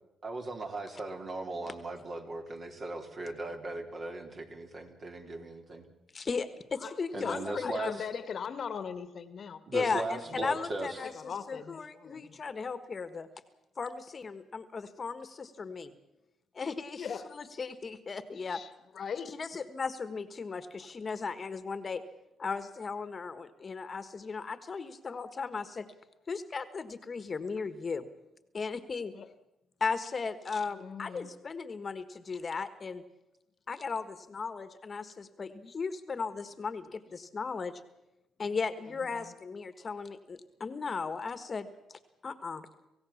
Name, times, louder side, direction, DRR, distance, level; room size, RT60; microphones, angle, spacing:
voice 1, 0.2-5.8 7.1-8.0 9.7-11.1, right 2 dB, 45° right, 3 dB, 3.6 m, -38 dB
voice 2, 6.1-8.0 9.7-13.3 13.8-15.9 16.5-17.1 17.3-18.6 19.3-22.0 22.4-25.9 26.3-28.0 28.5-29.1 29.8-33.0 33.7-34.0 34.3-37.7 38.4-41.7 42.2-42.7, left 5 dB, 35° left, 11 dB, 1.5 m, -36 dB
voice 3, 6.8-9.6 10.3-10.4 11.0-12.4 17.0-17.4 18.4-18.7 18.9-19.3 29.1-29.3 30.7-31.3 38.8-39.3, left 7 dB, 55° left, 11 dB, 1.5 m, -40 dB
26.5 x 16.0 x 7.2 m, 0.94 s
cardioid pair, 90°, 0 cm